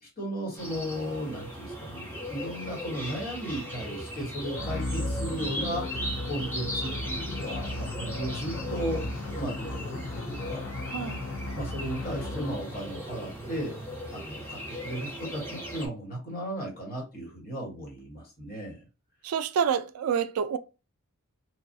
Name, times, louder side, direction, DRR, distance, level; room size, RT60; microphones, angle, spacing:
voice 1, 0.0-9.0 9.4-10.7 11.5-13.8 14.1-18.8, equal, 45° left, 1.4 m, -36 dB
sound 1, 0.6-15.9, equal, 10° left, 0.9 m, -38 dB
sound 2, 4.5-12.8, left 2 dB, 75° left, 0.5 m, -35 dB
voice 2, 10.9-11.3 19.2-20.6, right 7 dB, 90° right, 0.3 m, -28 dB
3.1 x 2.3 x 2.6 m
head